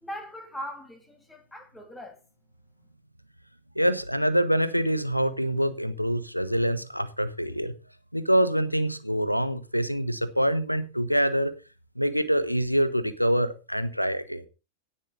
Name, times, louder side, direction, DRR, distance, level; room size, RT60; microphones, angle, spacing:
voice 1, 0.0-2.2, equal, 5° left, 3.4 m, -40 dB
voice 2, 3.7-7.7 8.1-11.5 12.0-14.5, equal, 90° left, 1.2 m, -25 dB
16.5 x 7.3 x 5.3 m
figure-of-eight pair, 90°, 0 cm